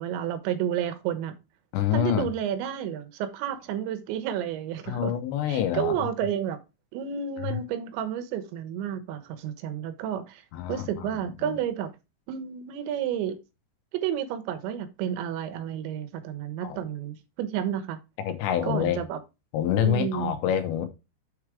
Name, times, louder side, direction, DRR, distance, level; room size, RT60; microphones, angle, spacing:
voice 1, 0.0-1.4 1.9-5.1 5.5-6.6 6.9-10.4 10.7-11.9 12.3-13.4 13.9-18.0 18.6-19.2 19.7-20.3, right 9 dB, 85° right, 3.3 m, -31 dB
voice 2, 1.7-2.3 4.9-5.9 10.5-11.6 16.6-16.8 18.2-19.0 19.5-20.9, left 10 dB, 85° left, 3.2 m, -27 dB
7.1 x 4.9 x 4.7 m
omnidirectional pair, 5.0 m